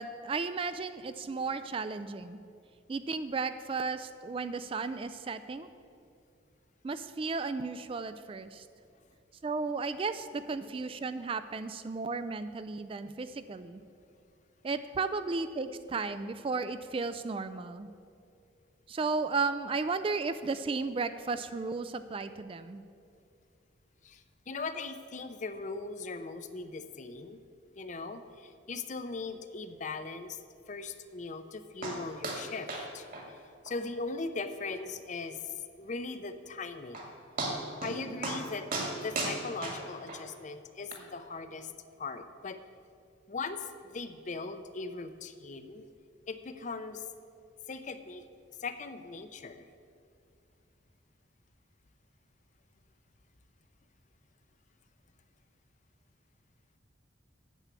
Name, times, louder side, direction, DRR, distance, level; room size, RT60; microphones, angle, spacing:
voice 1, 0.0-2.4 2.9-5.7 6.8-8.7 9.4-13.8 14.6-17.9 18.9-22.8, right 4 dB, 30° right, 11 dB, 0.3 m, -34 dB
voice 2, 24.0-27.4 27.8-33.4 33.6-37.1 37.8-38.7 38.9-41.7 42.0-42.6 43.3-45.9 46.3-47.1 47.7-48.2 48.6-49.7, left 3 dB, 40° left, 10 dB, 0.6 m, -39 dB
sound 1, 31.8-32.0 32.2-32.4 32.7-32.9 33.1-33.2 33.7-33.8 34.2-34.3 34.7-34.8 36.5-36.6 36.9-37.1 37.4-38.0 38.2-38.4 38.7-40.2 40.9-41.0, right 2 dB, 45° right, 1.8 m, -35 dB
9.1 x 7.2 x 8.2 m, 2.4 s
head